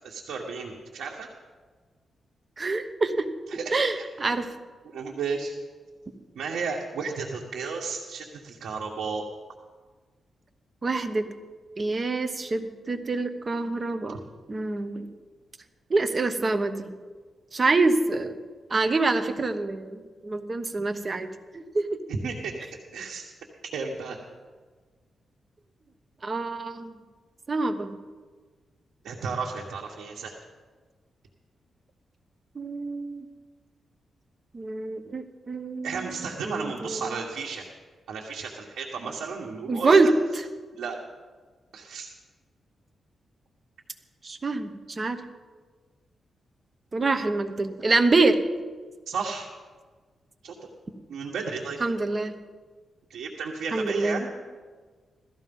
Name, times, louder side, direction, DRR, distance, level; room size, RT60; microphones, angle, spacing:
voice 1, 0.0-1.3 3.5-4.0 4.8-5.5 6.3-9.2 22.1-22.5 22.9-23.2 23.7-24.2 29.0-30.4 35.8-37.6 38.1-40.1 40.7-41.0 41.7-42.1 49.1-49.5 50.4-50.7 51.1-51.8 53.1-54.3, right 5 dB, 85° right, -2 dB, 1.6 m, -33 dB
voice 2, 2.6-3.3 3.7-4.5 10.8-11.2 11.8-14.2 14.5-15.1 15.9-16.9 17.5-18.3 18.7-21.3 21.5-21.9 26.2-27.0 27.5-27.9 32.5-33.3 34.5-36.0 36.4-37.2 39.7-40.1 44.2-45.2 46.9-48.4 51.8-52.3 53.7-54.2, right 3 dB, 30° right, 8 dB, 1.1 m, -26 dB
17.0 x 13.5 x 5.5 m, 1.5 s
wide cardioid pair, 130°, 0 cm